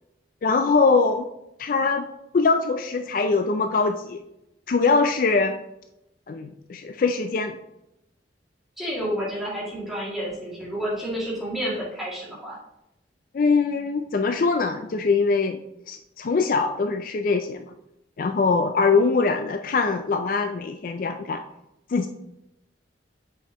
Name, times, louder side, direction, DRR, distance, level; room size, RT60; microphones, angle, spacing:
voice 1, 0.4-1.3 1.6-2.1 2.3-4.2 4.7-5.5 6.3-7.6 13.3-15.6 15.9-17.7 18.2-21.4 21.9-22.1, left 4 dB, 50° left, 7 dB, 0.4 m, -22 dB
voice 2, 8.8-12.6, equal, ahead, -7 dB, 2.3 m, -30 dB
7.3 x 5.1 x 2.9 m, 0.84 s
head